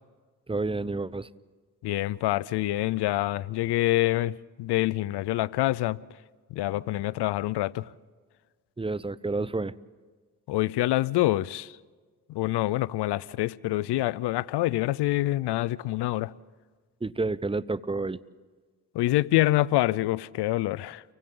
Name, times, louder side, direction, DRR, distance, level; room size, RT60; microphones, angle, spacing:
voice 1, 0.5-1.3 8.8-9.7 17.0-18.2, right 3 dB, 15° right, 0.6 m, -29 dB
voice 2, 1.8-6.0 6.5-7.9 10.5-11.7 12.3-16.3 18.9-21.0, left 16 dB, 85° left, 0.5 m, -26 dB
30.0 x 24.0 x 3.8 m
cardioid pair, 55°, 40 cm